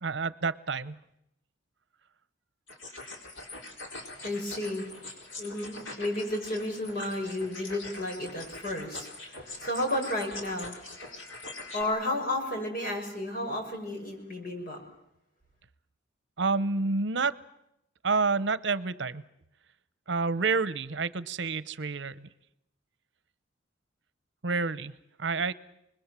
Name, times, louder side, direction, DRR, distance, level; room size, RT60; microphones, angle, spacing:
voice 1, 0.0-1.0 16.4-17.3 18.0-19.2 20.1-22.3 24.4-24.9 25.2-25.5, right 4 dB, 65° right, 16 dB, 0.9 m, -28 dB
sound 1, 2.7-11.8, left 2 dB, 80° left, 4.6 m, -43 dB
voice 2, 4.0-11.3 11.7-14.8, left 1 dB, 50° left, 3 dB, 6.6 m, -33 dB
29.0 x 21.0 x 7.5 m, 0.82 s
head